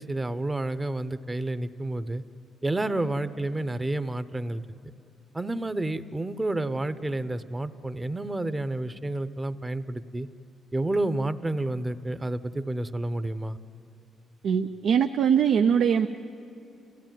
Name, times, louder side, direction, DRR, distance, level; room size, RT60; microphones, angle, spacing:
voice 1, 0.0-2.2 2.6-4.6 5.3-10.3 10.7-13.6, right 2 dB, 20° right, 12 dB, 0.8 m, -30 dB
voice 2, 14.4-16.1, right 7 dB, 70° right, 6 dB, 0.6 m, -22 dB
29.5 x 15.5 x 9.2 m, 2.8 s
cardioid pair, 90°, 0 cm